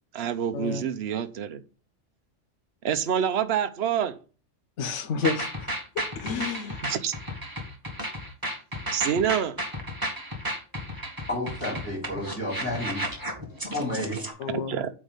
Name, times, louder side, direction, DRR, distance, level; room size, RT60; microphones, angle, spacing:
voice 1, 0.1-1.6 2.8-4.2 6.8-7.1 8.9-9.6 14.5-14.9, right 9 dB, 60° right, 1.0 m, -27 dB
voice 2, 4.8-5.7 6.0-6.8 14.4-14.7, left 4 dB, 70° left, 1.1 m, -30 dB
sound 1, 5.2-14.3, equal, 15° right, 1.5 m, -33 dB
voice 3, 11.3-13.2 13.6-14.3, left 1 dB, 10° left, 3.6 m, -31 dB
8.5 x 3.6 x 5.5 m
omnidirectional pair, 1.3 m